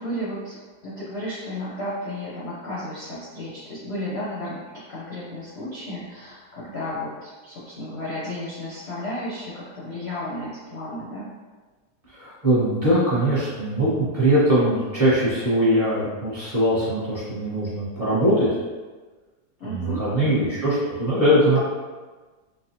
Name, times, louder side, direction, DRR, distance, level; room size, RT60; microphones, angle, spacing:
voice 1, 0.0-4.6 4.9-11.3 19.6-20.5, left 1 dB, 55° left, -8 dB, 0.7 m, -33 dB
voice 2, 12.1-13.9 14.1-18.5 19.6-21.6, right 1 dB, 25° right, -11 dB, 0.9 m, -21 dB
4.1 x 2.2 x 2.8 m, 1.3 s
omnidirectional pair, 1.8 m